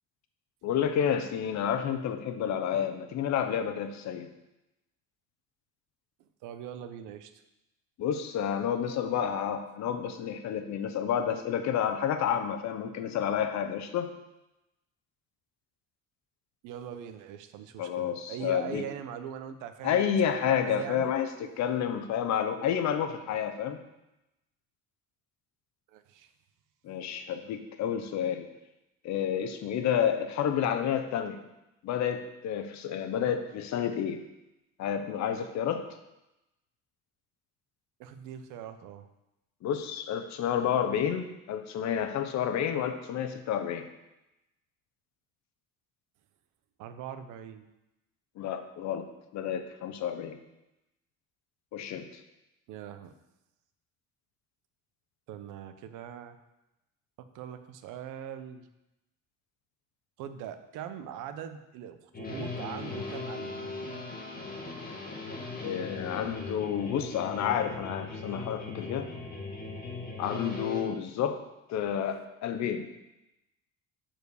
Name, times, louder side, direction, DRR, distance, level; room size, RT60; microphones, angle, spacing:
voice 1, 0.6-4.3 8.0-14.1 17.8-18.9 19.8-23.8 26.8-28.5 29.0-31.4 31.8-34.2 34.8-35.9 39.6-43.9 48.4-49.1 49.3-50.4 51.7-52.2 65.6-69.1 70.2-71.4 71.7-72.9, left 8 dB, 65° left, 8 dB, 0.9 m, -30 dB
voice 2, 6.2-7.3 16.6-20.0 20.4-21.1 25.9-26.3 38.0-39.0 46.8-47.7 52.7-53.1 55.3-56.4 57.2-58.7 60.2-63.5, right 9 dB, 85° right, 9 dB, 0.8 m, -41 dB
sound 1, 62.1-70.8, left 3 dB, 30° left, 1.7 m, -39 dB
6.9 x 4.5 x 6.8 m, 0.94 s
cardioid pair, 120°, 30 cm